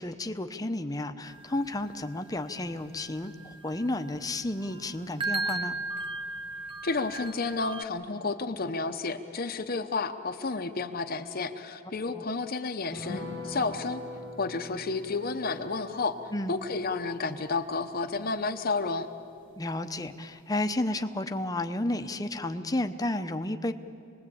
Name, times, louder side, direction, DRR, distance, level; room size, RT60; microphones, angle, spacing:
voice 1, 0.0-5.8 12.1-12.2 16.3-16.6 19.6-23.7, left 1 dB, 20° left, 8 dB, 0.8 m, -32 dB
sound 1, 1.2-7.8, right 2 dB, 25° right, 0.9 m, -37 dB
voice 2, 6.8-14.0 14.4-16.2 16.5-19.1, left 3 dB, 45° left, 6 dB, 0.8 m, -31 dB
sound 2, 12.9-19.7 20.0-20.1 20.4-20.6, left 1 dB, 90° right, 5.9 m, -44 dB
27.5 x 20.0 x 8.6 m, 2.5 s
head